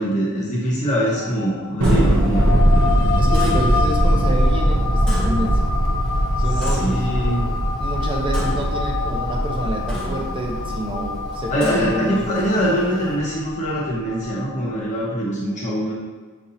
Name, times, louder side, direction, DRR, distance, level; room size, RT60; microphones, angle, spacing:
voice 1, 0.0-2.5 6.6-7.5 11.5-15.9, equal, 35° left, -6 dB, 0.9 m, -23 dB
sound 1, 1.1-15.1, left 5 dB, 85° left, 0.4 m, -29 dB
Clock, 1.8-13.1, equal, 5° left, 0.8 m, -36 dB
Thunder, 1.8-12.4, right 1 dB, 60° right, 0.7 m, -20 dB
voice 2, 3.2-5.7 6.4-7.1 7.8-12.6, right 1 dB, 25° right, 0 dB, 0.7 m, -28 dB
7.1 x 2.6 x 2.7 m, 1.4 s
head